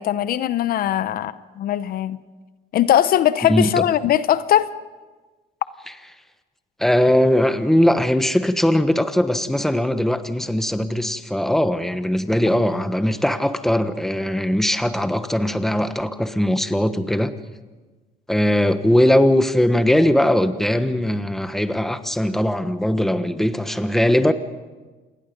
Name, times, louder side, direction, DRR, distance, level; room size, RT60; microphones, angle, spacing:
voice 1, 0.0-2.2 2.7-4.7, left 11 dB, 60° left, 14 dB, 0.8 m, -20 dB
voice 2, 3.5-3.9 6.8-17.3 18.3-24.3, left 1 dB, ahead, 10 dB, 1.2 m, -20 dB
27.5 x 21.0 x 5.3 m, 1.3 s
cardioid pair, 110°, 17 cm